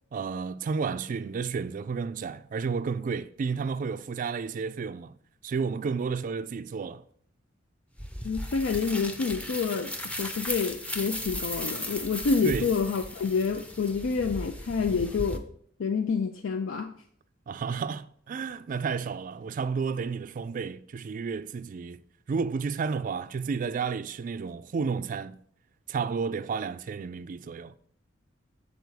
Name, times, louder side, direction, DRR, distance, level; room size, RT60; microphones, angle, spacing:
voice 1, 0.1-5.1 5.4-7.0 12.4-12.7 17.5-22.0 22.3-25.4 25.9-27.8, right 5 dB, 45° right, 0.3 m, -31 dB
sound 1, 8.0-15.4, left 1 dB, 5° left, 0.6 m, -36 dB
voice 2, 8.2-9.9 10.2-15.4 15.8-16.9, left 5 dB, 80° left, 0.4 m, -28 dB
6.8 x 4.2 x 4.7 m
head